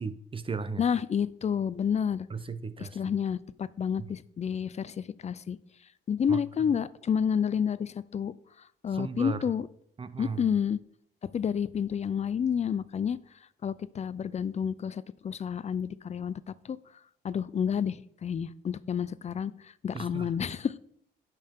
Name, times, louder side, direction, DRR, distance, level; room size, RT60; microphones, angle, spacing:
voice 1, 0.0-0.8 2.3-3.1 4.0-4.1 6.3-6.4 8.9-9.4 10.0-10.5 19.9-20.3, right 5 dB, 25° right, 12 dB, 0.6 m, -36 dB
voice 2, 0.8-2.3 2.8-5.6 6.1-8.3 8.8-9.7 10.2-10.8 11.3-13.2 13.6-16.4 16.7-16.8 17.2-20.7, left 7 dB, 35° left, 18 dB, 0.4 m, -30 dB
9.8 x 5.7 x 3.6 m, 0.66 s
cardioid pair, 90°, 20 cm